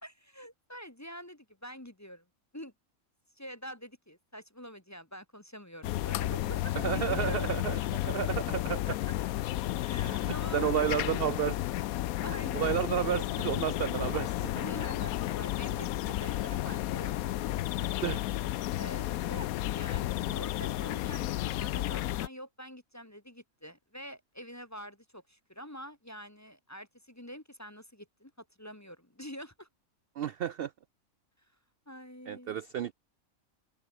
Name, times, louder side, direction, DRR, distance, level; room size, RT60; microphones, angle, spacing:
voice 1, 0.0-2.2 2.5-2.7 3.4-7.6 8.8-9.1 9.8-10.9 12.2-12.7 14.6-17.4 18.8-29.7 31.9-32.6, equal, 15° left, 1.0 m, -46 dB
sound 1, 5.8-22.3, left 15 dB, 85° left, 1.0 m, -32 dB
voice 2, 6.7-8.9 10.0-11.6 12.5-14.5 18.0-18.2 30.2-30.7 32.3-32.9, right 10 dB, 65° right, 0.6 m, -32 dB
open air
omnidirectional pair, 1.5 m